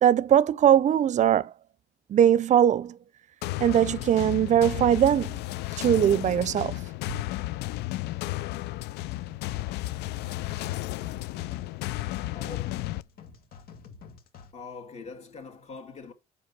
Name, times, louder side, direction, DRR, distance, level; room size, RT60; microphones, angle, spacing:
voice 1, 0.0-1.5 2.1-3.0 3.6-5.4 5.8-6.8, right 10 dB, 45° right, 0.5 m, -21 dB
sound 1, 3.4-13.0, left 17 dB, 80° left, 0.4 m, -33 dB
sound 2, 9.2-14.5, left 6 dB, 60° left, 1.8 m, -49 dB
voice 2, 12.3-12.9 14.5-16.1, left 4 dB, 40° left, 2.4 m, -43 dB
7.7 x 5.8 x 5.4 m
cardioid pair, 110°, 17 cm